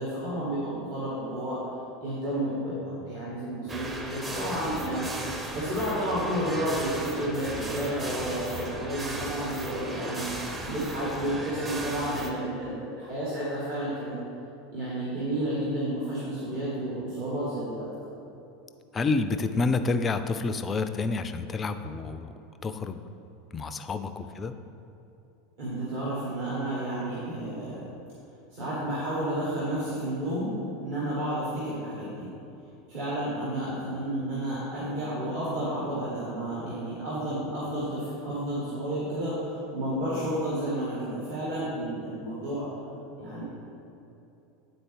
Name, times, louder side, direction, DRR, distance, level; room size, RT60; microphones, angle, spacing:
voice 1, 0.0-1.6 2.0-5.1 5.5-10.2 10.6-14.1 14.7-17.9 25.6-27.8 28.5-30.5 30.8-32.3 32.9-42.7 43.2-43.4, right 1 dB, 55° right, -8 dB, 1.5 m, -31 dB
sound 1, 3.7-12.3, right 1 dB, 15° right, 0.7 m, -35 dB
voice 2, 18.9-23.0 23.5-24.5, left 3 dB, 25° left, 10 dB, 0.3 m, -29 dB
9.0 x 4.0 x 3.3 m, 2.8 s
figure-of-eight pair, 80°, 0 cm